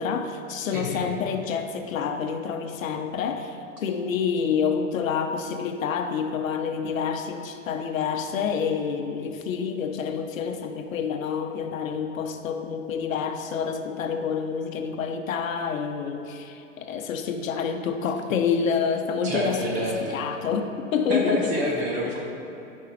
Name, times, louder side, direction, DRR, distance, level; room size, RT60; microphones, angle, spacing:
voice 1, 0.0-21.7, left 6 dB, 75° left, 6 dB, 1.0 m, -28 dB
voice 2, 0.7-1.1 19.2-20.2 21.1-22.2, equal, 20° right, -2 dB, 1.2 m, -28 dB
13.5 x 5.4 x 4.3 m, 2.9 s
supercardioid pair, 170°, 40 cm